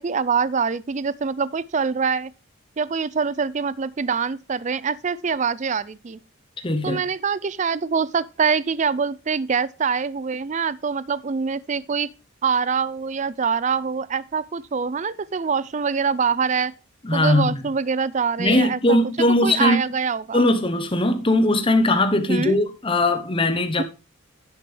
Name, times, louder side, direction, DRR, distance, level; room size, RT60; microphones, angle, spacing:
voice 1, 0.0-2.3 2.8-6.2 6.8-12.1 12.4-16.7 17.1-19.0 19.4-20.4 22.3-22.6, right 5 dB, 35° right, 0.4 m, -24 dB
voice 2, 6.6-7.0 17.0-17.7 18.4-19.8 20.3-23.8, left 1 dB, 25° left, 1.0 m, -20 dB
10.0 x 7.9 x 3.3 m
head